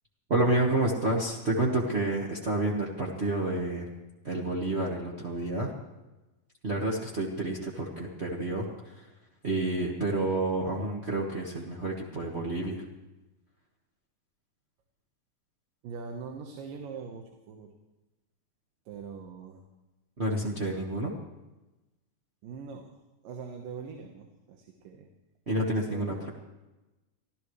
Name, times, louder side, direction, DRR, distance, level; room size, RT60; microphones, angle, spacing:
voice 1, 0.3-3.9 4.2-5.7 6.6-9.0 9.4-12.8 20.2-21.1 25.5-26.1, right 2 dB, 60° right, -3 dB, 0.6 m, -29 dB
voice 2, 15.8-17.7 18.9-19.6 22.4-22.9 23.2-25.1 25.8-26.3, right 5 dB, 85° right, 3 dB, 2.9 m, -42 dB
25.0 x 14.5 x 3.2 m, 1.1 s
omnidirectional pair, 3.8 m